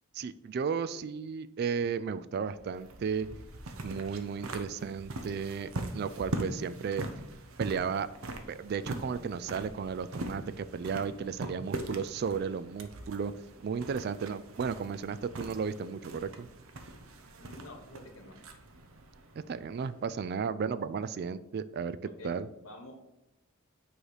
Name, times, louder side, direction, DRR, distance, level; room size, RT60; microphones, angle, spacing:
voice 1, 0.1-3.3 3.8-7.0 7.6-8.1 8.5-13.3 13.6-16.5 19.5-22.5, right 6 dB, 50° right, 15 dB, 0.3 m, -34 dB
sound 1, 2.4-20.1, right 2 dB, 80° right, 0.7 m, -42 dB
voice 2, 17.4-18.4 22.0-22.3 22.6-23.0, left 2 dB, 80° left, 3 dB, 1.4 m, -48 dB
8.7 x 3.2 x 4.8 m, 0.92 s
head